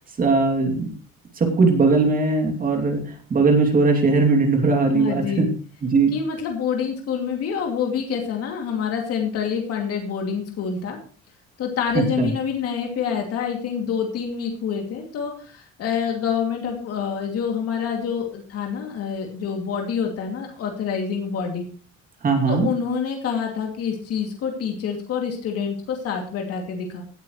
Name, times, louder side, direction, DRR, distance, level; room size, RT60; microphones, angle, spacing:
voice 1, 0.2-0.9 1.4-3.0 3.3-5.5 5.8-6.1 12.2-12.3 22.2-22.7, right 3 dB, 30° right, 3 dB, 2.7 m, -19 dB
voice 2, 4.9-5.5 6.1-11.0 11.6-21.7 22.5-27.0, left 7 dB, 55° left, 2 dB, 2.6 m, -27 dB
17.5 x 9.0 x 3.2 m, 0.39 s
cardioid pair, 165°, 29 cm